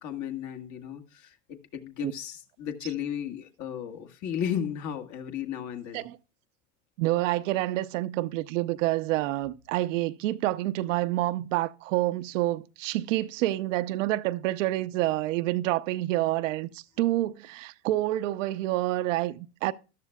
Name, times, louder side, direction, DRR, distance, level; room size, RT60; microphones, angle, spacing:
voice 1, 0.0-6.0, left 9 dB, 45° left, 1.7 m, -34 dB
voice 2, 7.0-19.7, right 16 dB, 70° right, 0.7 m, -28 dB
13.5 x 11.5 x 2.3 m
hypercardioid pair, 95°, 39 cm